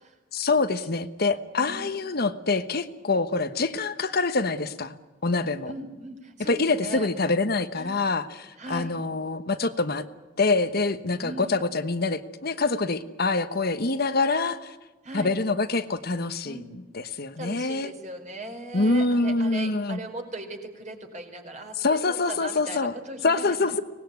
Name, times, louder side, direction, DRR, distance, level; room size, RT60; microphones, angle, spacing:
voice 1, 0.3-4.9 5.2-5.7 6.5-10.0 10.4-14.7 15.1-16.6 16.9-17.9 18.7-20.0 21.8-22.9 23.2-23.8, left 3 dB, 55° left, 10 dB, 1.2 m, -25 dB
voice 2, 1.6-1.9 5.6-7.1 7.8-8.0 8.6-8.9 11.2-11.6 15.0-15.3 16.4-16.7 17.4-23.8, right 2 dB, 40° right, 4 dB, 4.4 m, -39 dB
24.5 x 19.0 x 9.5 m, 1.2 s
head